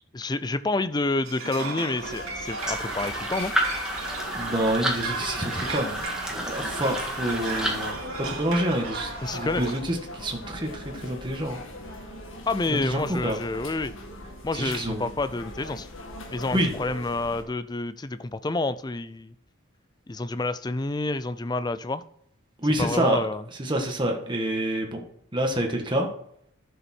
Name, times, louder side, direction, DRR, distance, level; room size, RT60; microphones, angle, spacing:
voice 1, 0.1-3.5 9.2-9.7 12.5-13.9 14.4-15.9 16.3-19.3 20.1-22.0 22.8-23.4, left 2 dB, 20° left, 14 dB, 0.4 m, -28 dB
sound 1, 1.2-9.8, right 3 dB, 90° right, 2.4 m, -35 dB
sound 2, 2.0-17.4, left 1 dB, 70° left, 2.2 m, -41 dB
sound 3, 2.6-7.9, right 1 dB, 5° right, 1.8 m, -31 dB
voice 2, 4.3-11.6 12.7-13.4 14.5-15.1 16.5-16.7 22.6-23.2 23.6-25.0 25.3-26.1, right 1 dB, 20° right, 2 dB, 1.5 m, -27 dB
12.0 x 7.0 x 4.4 m, 0.69 s
head